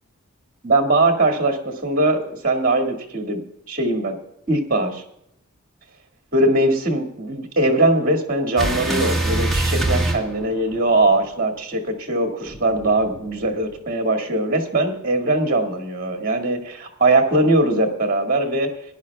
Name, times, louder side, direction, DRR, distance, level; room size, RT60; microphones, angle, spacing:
voice 1, 0.6-3.4 3.7-4.2 4.5-5.0 6.3-18.7, right 2 dB, 40° right, 3 dB, 2.0 m, -20 dB
sound 1, 8.6-11.1 12.5-13.8, right 1 dB, ahead, 1.5 m, -24 dB
19.0 x 10.5 x 2.3 m, 0.76 s
head